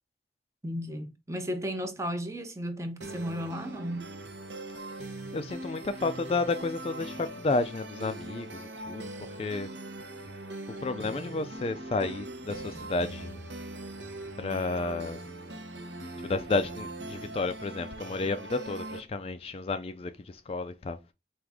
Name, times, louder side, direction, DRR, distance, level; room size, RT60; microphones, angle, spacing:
voice 1, 0.6-4.0, equal, 15° right, 0.6 m, -34 dB
sound 1, 3.0-19.0, right 2 dB, 80° right, 0.8 m, -41 dB
voice 2, 5.3-9.1 9.4-9.7 10.8-13.4 14.4-15.2 16.2-21.0, left 3 dB, 30° left, 0.3 m, -31 dB
4.7 x 2.5 x 3.5 m
head